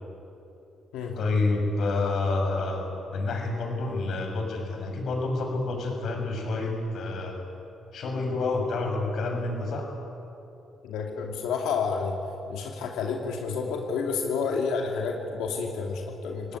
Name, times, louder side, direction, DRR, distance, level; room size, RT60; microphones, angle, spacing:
voice 1, 1.1-7.4 7.9-9.8 16.5-16.6, left 3 dB, 65° left, 3 dB, 6.6 m, -28 dB
voice 2, 10.8-12.1 12.5-16.6, left 5 dB, 90° left, 1 dB, 2.7 m, -30 dB
26.5 x 18.0 x 9.6 m, 2.9 s
cardioid pair, 90°, 0 cm